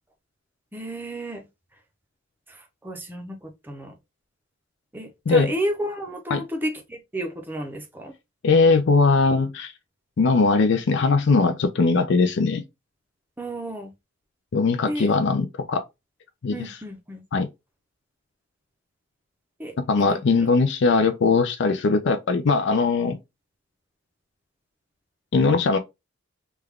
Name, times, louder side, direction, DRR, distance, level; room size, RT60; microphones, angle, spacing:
voice 1, 0.7-1.4 2.5-3.9 4.9-8.1 13.4-13.9 14.9-15.1 16.5-17.2 19.6-19.7 20.1-20.2, right 1 dB, 10° right, 0.6 m, -32 dB
voice 2, 8.4-9.7 10.2-12.6 14.5-15.8 16.4-16.7 17.3-17.5 19.9-23.2 25.3-25.8, left 4 dB, 60° left, 0.4 m, -20 dB
3.3 x 2.3 x 3.5 m
head